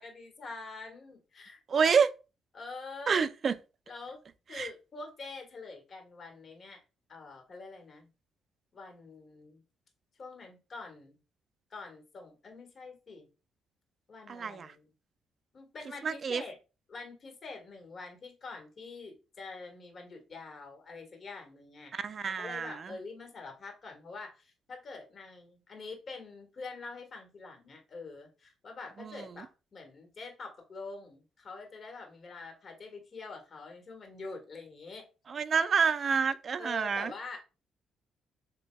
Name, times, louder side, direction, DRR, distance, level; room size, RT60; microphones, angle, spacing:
voice 1, 0.0-1.9 2.5-3.3 3.9-4.2 4.5-6.8 7.1-8.1 8.7-9.6 10.2-11.2 11.7-13.3 14.1-14.9 15.5-16.6 16.9-21.9 22.2-35.1 36.6-37.4, left 3 dB, 45° left, 1.6 m, -45 dB
voice 2, 1.7-2.1 3.1-3.5 4.5-4.7 14.3-14.7 16.0-16.4 21.9-22.7 29.0-29.1 35.3-37.1, right 6 dB, 45° right, 0.4 m, -28 dB
7.5 x 2.7 x 2.3 m
cardioid pair, 90°, 0 cm